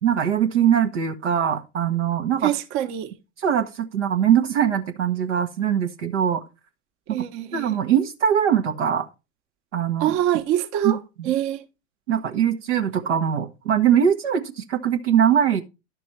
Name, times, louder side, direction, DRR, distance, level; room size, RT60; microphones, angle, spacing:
voice 1, 0.0-2.5 3.4-6.4 7.1-7.2 7.5-9.1 9.7-10.1 10.8-10.9 12.1-15.6, right 9 dB, 75° right, 1.1 m, -21 dB
voice 2, 2.4-3.1 7.1-7.8 10.0-11.0 11.2-11.6, right 12 dB, 50° right, 1.3 m, -24 dB
11.0 x 6.0 x 4.4 m
figure-of-eight pair, 80°, 36 cm